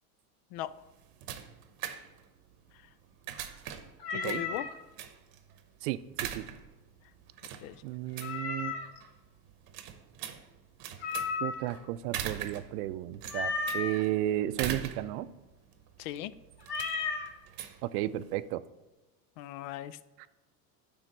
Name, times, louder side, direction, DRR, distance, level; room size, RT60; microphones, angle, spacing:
sound 1, 0.6-18.5, right 10 dB, 50° right, 0.9 m, -43 dB
Meow, 4.0-4.7 8.2-9.0 11.0-11.8 13.3-14.0 16.6-17.3, left 4 dB, 85° left, 2.1 m, -34 dB
voice 1, 4.1-4.7 7.6-7.8 16.0-16.3 19.4-20.0, left 12 dB, 55° left, 17 dB, 0.5 m, -38 dB
voice 2, 5.8-6.4 7.8-8.7 11.4-15.3 17.8-18.6 20.2-20.3, right 14 dB, 75° right, 15 dB, 0.5 m, -33 dB
9.8 x 3.6 x 5.3 m, 1.1 s
supercardioid pair, 110°, 47 cm